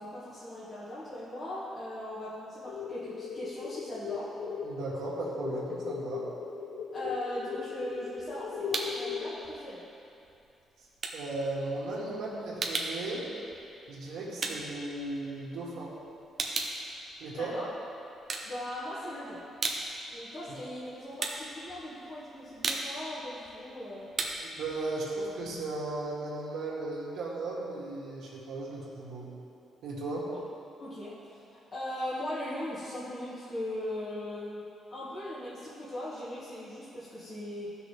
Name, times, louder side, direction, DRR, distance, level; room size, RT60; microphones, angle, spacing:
voice 1, 0.0-4.3 6.9-9.8 17.4-17.6 18.4-19.4 20.1-24.1 30.8-31.4 31.7-34.7 34.9-37.8, left 1 dB, 35° left, -11 dB, 1.8 m, -39 dB
sound 1, 2.7-9.4, left 6 dB, 65° left, 0.7 m, -38 dB
voice 2, 4.6-6.3 11.1-13.3 13.9-15.9 17.2-17.6 24.4-29.3 29.8-30.3, right 2 dB, 80° right, -5 dB, 2.2 m, -36 dB
sound 2, 7.9-9.1 9.4-15.7 16.0-17.8 18.1-19.0 19.4-26.1, right 3 dB, 35° right, 0.9 m, -37 dB
14.5 x 6.3 x 3.4 m, 2.7 s
cardioid pair, 145°, 0 cm